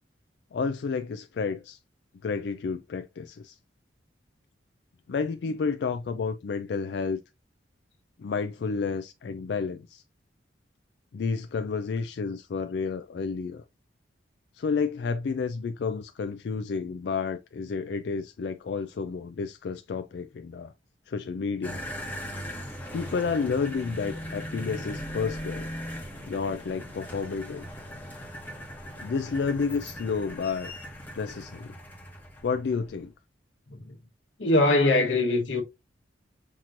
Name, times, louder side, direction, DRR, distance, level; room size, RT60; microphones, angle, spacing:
voice 1, 0.5-1.8 2.2-3.6 5.1-7.2 8.2-10.0 11.1-13.6 14.5-20.7 21.1-21.8 22.9-25.7 26.3-27.7 29.0-30.7 31.1-31.7 32.4-33.1, left 5 dB, 60° left, 0.3 m, -30 dB
sound 1, 21.6-33.0, equal, 10° left, 1.1 m, -39 dB
voice 2, 34.4-35.6, left 2 dB, 90° left, 1.2 m, -21 dB
5.8 x 3.0 x 2.5 m
head